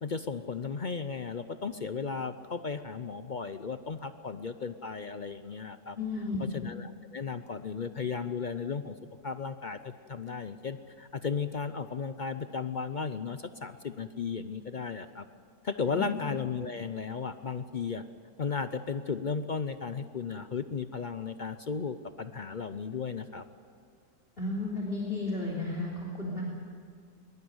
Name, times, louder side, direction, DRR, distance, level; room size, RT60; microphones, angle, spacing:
voice 1, 0.0-6.0 6.4-8.9 9.2-15.3 15.6-18.0 18.4-23.4, left 5 dB, 55° left, 11 dB, 0.5 m, -35 dB
voice 2, 5.9-6.5 15.9-16.1 24.4-26.4, left 2 dB, 35° left, -2 dB, 3.4 m, -33 dB
22.0 x 21.5 x 8.0 m, 2.2 s
omnidirectional pair, 1.7 m